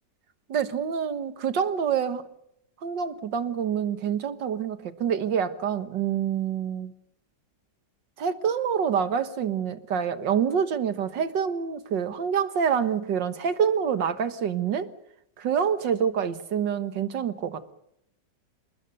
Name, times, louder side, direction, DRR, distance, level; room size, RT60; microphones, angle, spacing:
voice 1, 0.5-2.3 2.8-6.9 8.2-14.9 15.4-17.7, right 7 dB, 90° right, 11 dB, 2.1 m, -26 dB
28.0 x 20.5 x 6.7 m, 0.75 s
omnidirectional pair, 1.9 m